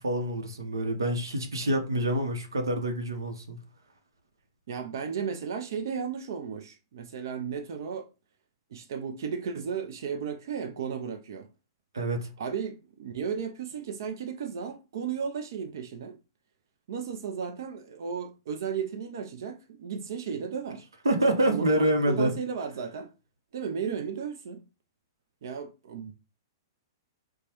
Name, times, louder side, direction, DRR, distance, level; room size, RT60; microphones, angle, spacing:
voice 1, 0.0-3.6 11.9-12.3 21.0-22.4, right 1 dB, 85° right, 0.8 m, -26 dB
voice 2, 4.7-8.1 8.7-11.5 12.4-16.2 16.9-20.9 21.5-23.1 23.5-24.6 25.4-26.1, right 6 dB, 65° right, 0.5 m, -34 dB
4.5 x 2.2 x 3.0 m
hypercardioid pair, 115°, 2 cm